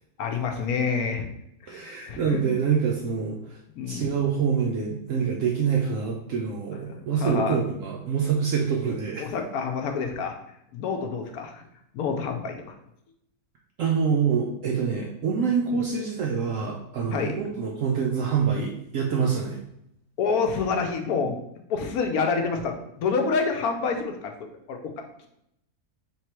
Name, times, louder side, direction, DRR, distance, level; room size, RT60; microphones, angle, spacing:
voice 1, 0.2-1.3 1.6-2.4 3.7-4.1 6.9-7.6 9.2-10.3 10.7-11.6 11.9-12.7 15.7-15.8 17.1-17.3 20.2-21.4 21.7-24.8, left 5 dB, 75° left, 4 dB, 1.1 m, -28 dB
voice 2, 1.7-3.6 3.9-9.3 13.8-19.6, right 6 dB, 65° right, -1 dB, 0.9 m, -26 dB
3.7 x 3.1 x 4.4 m, 0.76 s
omnidirectional pair, 1.6 m